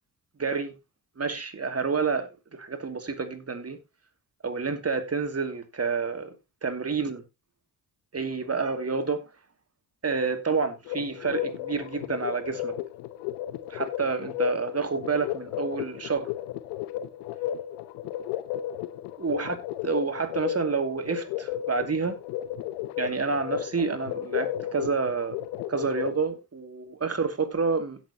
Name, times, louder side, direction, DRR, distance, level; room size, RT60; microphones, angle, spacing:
voice 1, 0.4-0.7 1.2-3.8 4.4-6.3 6.6-7.2 8.1-9.2 10.0-12.7 13.7-16.3 19.2-19.6 19.8-22.2 23.0-25.4 25.7-28.0, right 4 dB, 35° right, 2.5 m, -29 dB
sound 1, 10.9-26.2, left 12 dB, 85° left, 0.8 m, -34 dB
16.5 x 6.9 x 2.9 m
hypercardioid pair, 45°, 41 cm